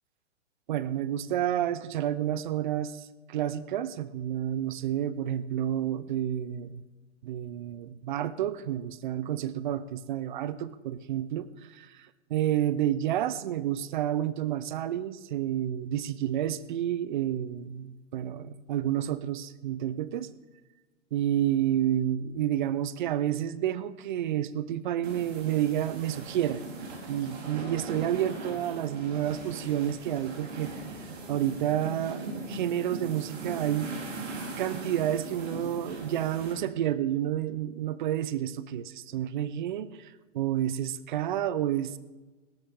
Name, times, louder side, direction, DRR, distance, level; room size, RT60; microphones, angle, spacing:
voice 1, 0.7-6.8 7.2-20.3 21.1-26.6 26.9-33.9 34.6-42.0, right 11 dB, 40° right, 15 dB, 0.6 m, -30 dB
sound 1, 25.0-36.5, right 2 dB, 60° right, 3.9 m, -40 dB
17.0 x 13.0 x 3.7 m, 1.2 s
hypercardioid pair, 155°, 37 cm